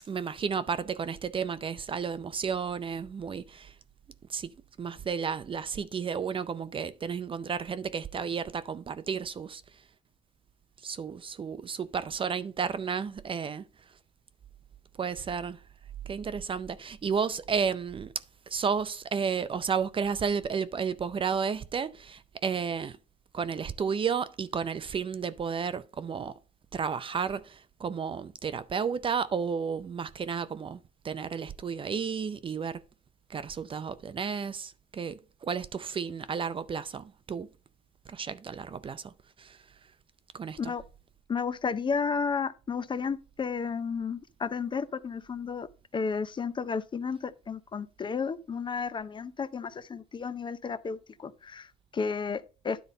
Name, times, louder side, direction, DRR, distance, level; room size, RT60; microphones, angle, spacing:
voice 1, 0.1-3.7 4.3-4.5 4.8-9.6 10.8-13.6 15.0-15.6 16.1-18.1 18.5-23.0 23.3-26.4 26.7-30.8 31.0-32.8 33.3-37.5 38.1-39.1 39.4-39.6 40.3-40.7, right 6 dB, 30° right, 0.5 m, -32 dB
voice 2, 41.3-45.7 45.9-52.8, left 5 dB, 30° left, 0.6 m, -32 dB
10.0 x 4.1 x 5.2 m
cardioid pair, 110°, 17 cm